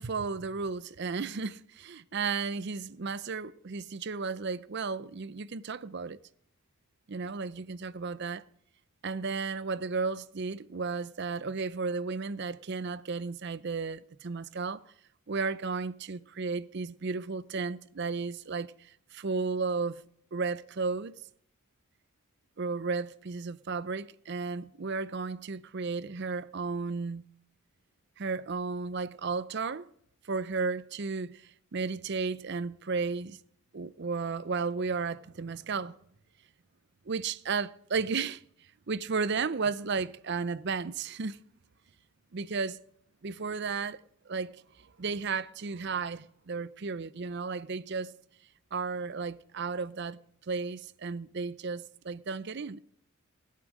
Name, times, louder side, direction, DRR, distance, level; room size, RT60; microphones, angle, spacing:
voice 1, 0.0-6.2 7.1-8.4 9.0-14.8 15.3-20.0 20.3-21.1 22.6-27.2 28.2-29.9 30.2-33.4 33.7-35.9 37.1-38.4 38.9-41.4 42.3-42.8 43.2-44.0 44.3-44.6 45.0-48.1 48.7-52.8, right 4 dB, 50° right, 0.5 m, -34 dB
16.0 x 8.4 x 6.4 m
head